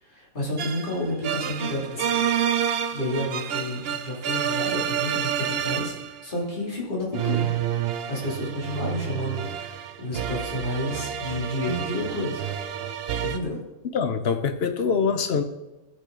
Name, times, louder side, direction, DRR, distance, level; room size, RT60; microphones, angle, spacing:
voice 1, 0.0-2.2 2.9-5.9 6.2-7.5 8.1-12.4 13.2-13.6, left 1 dB, 35° left, -5 dB, 2.8 m, -30 dB
sound 1, 0.6-6.2 7.1-13.4, right 9 dB, 60° right, 0.7 m, -29 dB
voice 2, 13.9-15.4, left 5 dB, 55° left, 8 dB, 0.8 m, -24 dB
13.0 x 6.7 x 3.8 m, 1.0 s
omnidirectional pair, 1.5 m